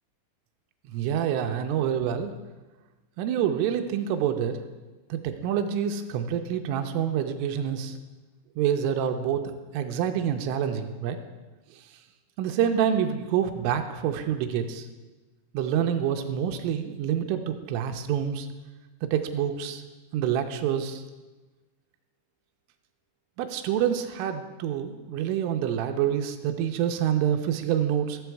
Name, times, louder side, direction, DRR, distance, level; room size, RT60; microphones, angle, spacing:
voice 1, 0.9-2.3 3.2-4.6 5.1-8.0 8.6-9.4 9.7-11.2 12.4-14.9 15.5-18.5 19.0-19.8 20.1-21.0 23.4-28.2, right 9 dB, 85° right, 6 dB, 3.0 m, -27 dB
14.5 x 6.9 x 4.6 m, 1.2 s
omnidirectional pair, 5.8 m